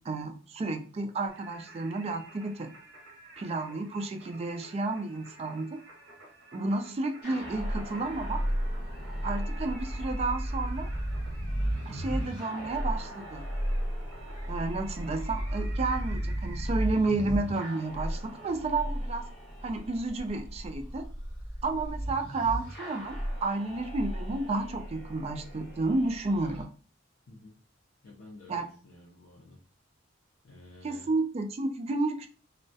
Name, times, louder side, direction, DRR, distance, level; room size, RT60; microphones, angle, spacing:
voice 1, 0.1-2.7 3.4-5.8 6.5-8.4 9.2-10.9 11.9-13.4 14.5-19.3 19.6-21.0 21.6-26.7 28.5-28.6 30.8-32.3, right 3 dB, 30° right, 5 dB, 0.3 m, -31 dB
Singing, 1.3-16.7, right 2 dB, 75° right, 0.7 m, -52 dB
sound 1, 7.2-26.6, equal, 55° left, 1.1 m, -34 dB
voice 2, 28.0-29.6 30.4-31.1, left 2 dB, 75° left, -1 dB, 0.5 m, -51 dB
2.3 x 2.1 x 2.6 m, 0.41 s
head